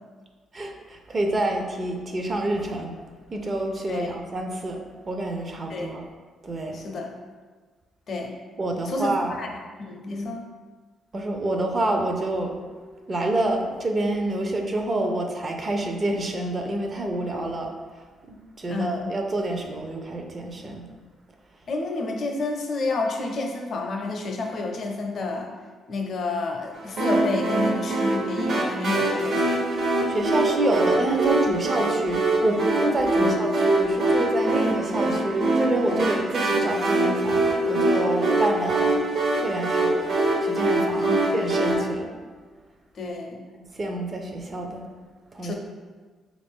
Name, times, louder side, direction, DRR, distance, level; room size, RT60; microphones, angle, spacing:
voice 1, 0.5-2.9 3.3-4.8 5.1-6.0 6.4-6.8 8.6-9.4 10.1-10.3 11.1-12.6 13.1-17.7 18.3-20.9 30.1-38.9 39.4-40.0 40.4-42.1 43.5-44.8 45.3-45.5, right 2 dB, 35° right, 3 dB, 0.5 m, -27 dB
voice 2, 3.8-4.1 5.7-5.9 6.7-7.2 8.1-8.3 8.9-9.5 9.8-10.4 18.7-19.1 21.7-25.5 25.9-29.6 33.1-33.4 41.0-41.3 42.9-43.4 45.4-45.5, left 3 dB, 55° left, 2 dB, 0.6 m, -30 dB
sound 1, 27.0-41.7, right 2 dB, 65° right, 1.0 m, -23 dB
3.9 x 2.5 x 3.5 m, 1.4 s
cardioid pair, 90°, 0 cm